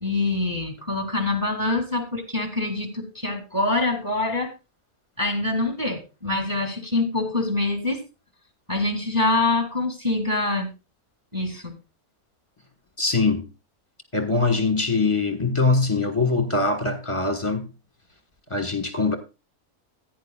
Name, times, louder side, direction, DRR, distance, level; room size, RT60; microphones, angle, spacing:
voice 1, 0.0-4.5 5.2-8.0 8.7-10.7 11.3-11.7, left 2 dB, 15° right, 2.1 m, -25 dB
voice 2, 13.0-13.4 14.1-17.6 18.5-19.2, left 3 dB, 20° left, 1.3 m, -22 dB
15.5 x 9.8 x 2.3 m
omnidirectional pair, 1.6 m